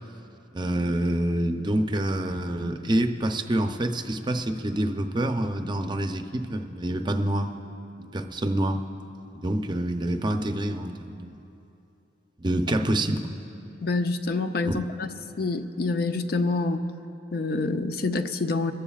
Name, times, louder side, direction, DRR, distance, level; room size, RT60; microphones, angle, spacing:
voice 1, 0.5-7.5 8.0-8.8 9.3-11.3 12.4-13.3 14.7-14.8, right 1 dB, 25° right, 6 dB, 0.6 m, -27 dB
voice 2, 13.8-15.1 15.4-16.8 17.3-18.7, left 3 dB, 55° left, 8 dB, 0.6 m, -26 dB
30.0 x 14.0 x 2.4 m, 2.9 s
head